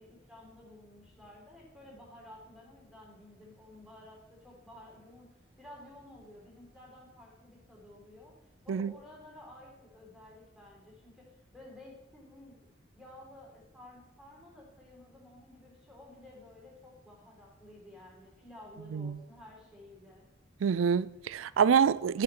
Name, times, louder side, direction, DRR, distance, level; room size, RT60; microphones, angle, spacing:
voice 1, 0.0-5.3 5.6-8.3 8.6-12.7 12.9-20.3, left 1 dB, 5° right, 4.0 m, -53 dB
voice 2, 20.6-22.2, right 7 dB, 85° right, 0.4 m, -26 dB
12.5 x 6.7 x 5.9 m
head